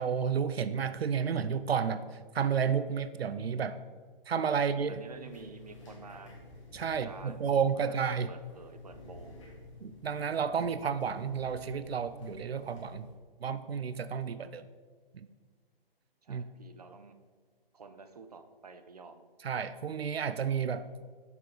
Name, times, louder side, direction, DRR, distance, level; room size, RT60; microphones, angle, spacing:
voice 1, 0.0-3.8 4.3-5.0 6.7-8.3 9.8-13.1 13.4-14.7 15.1-15.3 16.3-16.4 19.4-20.9, right 7 dB, 90° right, 13 dB, 0.6 m, -31 dB
sound 1, 4.9-13.1, left 2 dB, 30° left, 1.7 m, -52 dB
voice 2, 4.9-6.3 7.0-8.0 8.3-9.4 16.2-17.1 17.7-19.2, right 4 dB, 40° right, 8 dB, 0.6 m, -50 dB
7.1 x 6.7 x 4.9 m, 1.5 s
hypercardioid pair, 165°, 30 cm